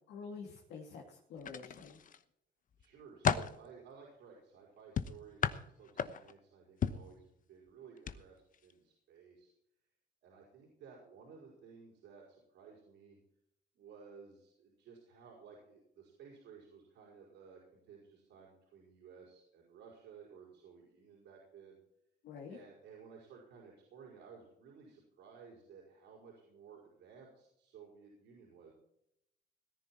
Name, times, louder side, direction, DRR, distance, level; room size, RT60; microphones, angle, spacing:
voice 1, 0.1-2.0 22.2-22.6, left 5 dB, 85° left, -1 dB, 2.4 m, -48 dB
sound 1, 1.4-2.2 2.7-3.6 5.0-6.4 6.8-7.1 8.0-8.2 8.5-8.7, left 7 dB, 50° left, 1.0 m, -34 dB
voice 2, 2.8-9.5 10.2-13.2 13.7-21.8 22.5-28.7, right 6 dB, 90° right, -4 dB, 5.4 m, -56 dB
18.0 x 10.5 x 4.4 m, 0.77 s
cardioid pair, 110°, 18 cm